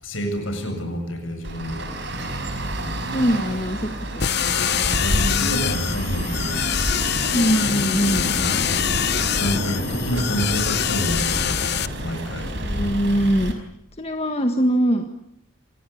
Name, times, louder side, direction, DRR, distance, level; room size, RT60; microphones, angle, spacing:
voice 1, 0.0-2.0 4.9-6.7 9.4-11.7 12.0-12.6, equal, 70° left, 5 dB, 7.8 m, -28 dB
Traffic noise roadway noise, 1.4-13.5, right 1 dB, 55° right, 5.2 m, -28 dB
voice 2, 3.1-4.5 5.1-5.6 7.3-8.3 12.6-13.5 14.0-15.1, equal, 30° left, 5 dB, 1.7 m, -22 dB
sound 1, 4.2-11.9, left 10 dB, 50° left, 0.9 m, -24 dB
27.5 x 19.0 x 8.6 m, 0.76 s
head